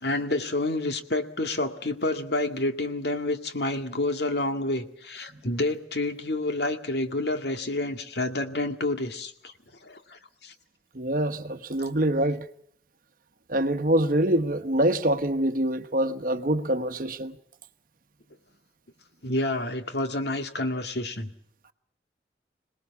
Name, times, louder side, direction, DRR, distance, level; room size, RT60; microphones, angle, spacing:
voice 1, 0.0-9.5 9.8-10.5 19.2-21.3, left 2 dB, 65° left, 2.1 m, -29 dB
voice 2, 10.9-12.5 13.5-17.4, right 1 dB, 50° right, 1.2 m, -25 dB
27.0 x 19.0 x 7.1 m
head